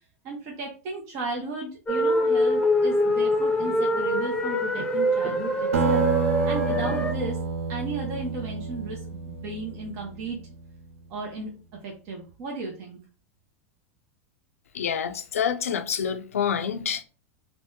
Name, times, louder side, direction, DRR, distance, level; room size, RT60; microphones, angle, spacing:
voice 1, 0.2-6.1 6.4-7.4 7.7-10.4 11.1-13.0, right 3 dB, 50° right, 0.7 m, -35 dB
sound 1, 1.9-7.1, left 1 dB, 10° left, 0.7 m, -24 dB
Acoustic guitar, 5.7-10.6, right 5 dB, 80° right, 0.5 m, -29 dB
voice 2, 14.7-17.0, left 8 dB, 85° left, 0.4 m, -27 dB
3.4 x 2.1 x 2.7 m
hypercardioid pair, 100°, 8 cm